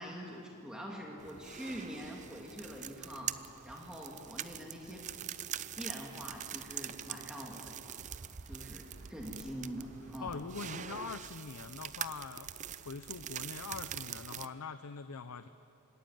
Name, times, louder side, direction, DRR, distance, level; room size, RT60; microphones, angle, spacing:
voice 1, 0.0-3.4 3.6-5.0 5.8-7.7 8.5-10.4, equal, 5° right, -2 dB, 2.0 m, -44 dB
sound 1, 1.2-14.5, right 10 dB, 35° right, 0.4 m, -44 dB
sound 2, 1.3-10.2, right 1 dB, 55° right, 5.3 m, -64 dB
voice 2, 10.2-15.5, left 5 dB, 85° left, 10 dB, 0.7 m, -43 dB
26.0 x 14.0 x 9.3 m, 3.0 s
head